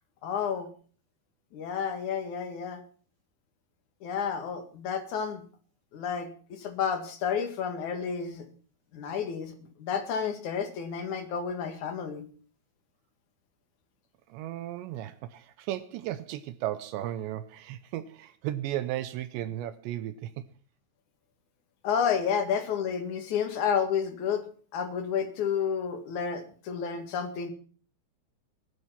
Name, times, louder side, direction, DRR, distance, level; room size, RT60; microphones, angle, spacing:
voice 1, 0.2-0.7 1.5-2.8 4.0-5.4 5.9-8.4 8.9-9.5 9.8-12.2 21.8-24.5 24.7-27.5, left 7 dB, 55° left, 2.4 m, -30 dB
voice 2, 14.3-20.4, right 13 dB, 80° right, 2.7 m, -35 dB
22.5 x 7.8 x 5.8 m
omnidirectional pair, 5.8 m